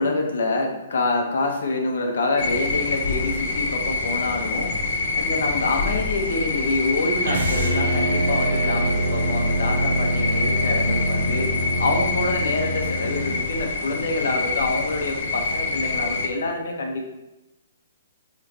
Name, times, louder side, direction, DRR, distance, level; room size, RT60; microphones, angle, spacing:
voice 1, 0.0-4.7 5.1-11.5 11.8-17.0, left 2 dB, 70° left, 2 dB, 1.2 m, -26 dB
sound 1, 2.4-16.3, left 3 dB, 45° left, 0.9 m, -26 dB
sound 2, 7.2-13.4, right 1 dB, 75° right, 0.9 m, -25 dB
9.9 x 3.6 x 3.0 m, 0.98 s
hypercardioid pair, 175°, 0 cm